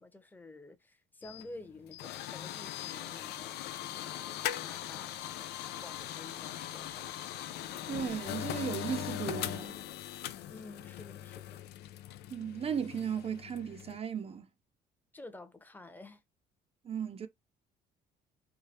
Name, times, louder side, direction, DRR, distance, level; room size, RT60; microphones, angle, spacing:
voice 1, 0.0-5.5 5.8-7.3 10.5-11.6 15.1-16.2, left 2 dB, 10° left, 0.9 m, -51 dB
sound 1, 1.2-14.0, left 12 dB, 75° left, 0.5 m, -40 dB
voice 2, 7.9-9.8 12.3-14.5 16.8-17.3, right 8 dB, 35° right, 0.6 m, -36 dB
4.8 x 2.2 x 2.8 m
cardioid pair, 110°, 17 cm